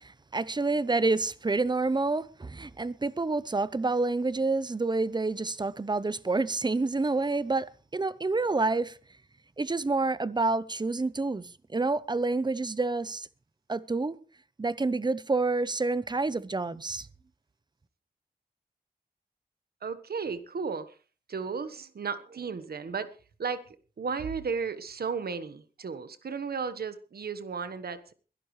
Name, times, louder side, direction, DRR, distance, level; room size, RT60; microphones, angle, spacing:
voice 1, 0.0-9.0 9.6-13.3 13.7-14.2 14.6-17.1, right 3 dB, 30° right, 0.8 m, -28 dB
voice 2, 19.8-20.9 21.3-23.1 23.4-23.6 24.0-28.1, right 5 dB, 85° right, 1.3 m, -34 dB
22.0 x 12.0 x 3.3 m
wide cardioid pair, 90°, 16 cm